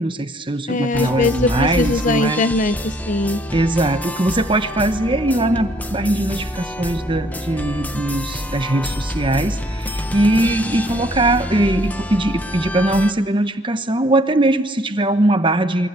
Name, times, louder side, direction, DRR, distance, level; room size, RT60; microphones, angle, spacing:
voice 1, 0.0-2.4 3.5-15.9, right 1 dB, 30° right, 9 dB, 1.1 m, -20 dB
voice 2, 0.7-3.4, left 2 dB, 45° left, 12 dB, 0.9 m, -20 dB
sound 1, 0.9-13.1, left 1 dB, 10° left, 1.0 m, -28 dB
28.0 x 24.0 x 8.3 m, 1.3 s
head